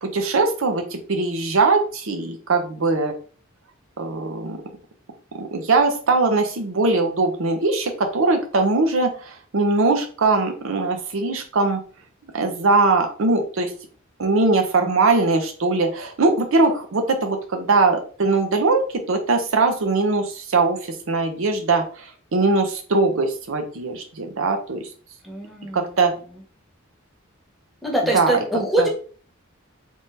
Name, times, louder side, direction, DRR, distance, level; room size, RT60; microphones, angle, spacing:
voice 1, 0.0-3.1 4.0-4.6 5.3-11.8 12.3-13.7 14.2-20.8 21.1-22.0 22.3-24.9 25.7-26.1 28.1-28.4 28.8-28.9, right 3 dB, 75° right, 5 dB, 0.7 m, -21 dB
voice 2, 25.2-25.9 27.8-28.9, right 1 dB, ahead, -2 dB, 1.0 m, -23 dB
3.5 x 2.7 x 3.3 m, 0.40 s
head